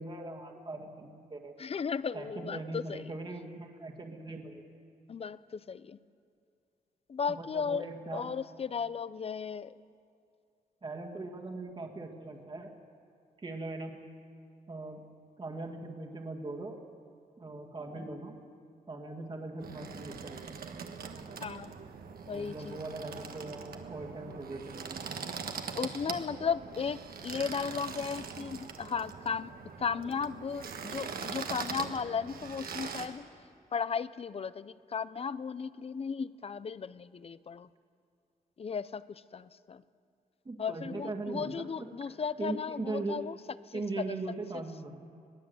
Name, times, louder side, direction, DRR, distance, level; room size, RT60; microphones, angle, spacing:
voice 1, 0.0-1.5 2.1-4.6 7.3-8.3 10.8-12.7 13.4-14.0 14.7-15.0 15.4-16.8 17.4-18.4 18.9-20.6 22.3-25.4 40.5-41.9 42.4-43.3 43.7-45.1, right 2 dB, 30° right, 1 dB, 1.9 m, -40 dB
voice 2, 1.6-3.1 5.1-6.0 7.1-9.7 21.4-21.7 22.3-22.8 25.7-33.3 33.7-37.7 38.6-39.8 40.6-43.4 43.7-44.2 44.5-44.6, left 6 dB, 40° left, 16 dB, 0.6 m, -35 dB
sound 1, 19.6-33.1, right 6 dB, 75° right, 1.5 m, -42 dB
22.0 x 16.5 x 7.9 m, 2.5 s
wide cardioid pair, 130°, 15 cm